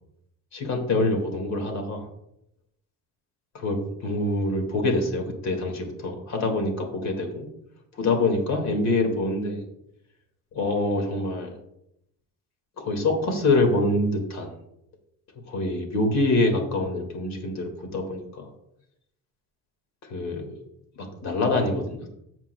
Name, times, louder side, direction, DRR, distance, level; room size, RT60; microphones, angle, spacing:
voice 1, 0.5-2.1 3.5-7.5 7.9-9.6 10.5-11.5 12.8-14.5 15.5-18.5 20.1-20.5 21.0-22.1, left 2 dB, 50° left, 4 dB, 2.0 m, -25 dB
14.0 x 7.4 x 2.2 m, 0.79 s
cardioid pair, 155°, 34 cm